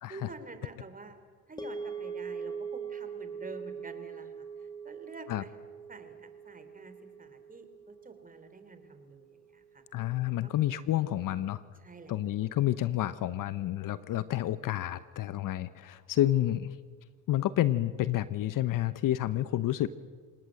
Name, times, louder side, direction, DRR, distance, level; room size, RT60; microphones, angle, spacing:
voice 1, 0.1-1.2 1.5-5.5 5.9-9.8 10.4-10.5 11.1-11.5 11.8-12.3, right 3 dB, 20° right, 9 dB, 3.7 m, -49 dB
sound 1, 1.6-9.9, right 6 dB, 10° left, 3.1 m, -42 dB
voice 2, 9.9-11.6 12.1-16.7 17.3-19.9, left 13 dB, 50° left, 14 dB, 1.0 m, -29 dB
28.5 x 18.5 x 7.9 m, 1.5 s
supercardioid pair, 80°, 40 cm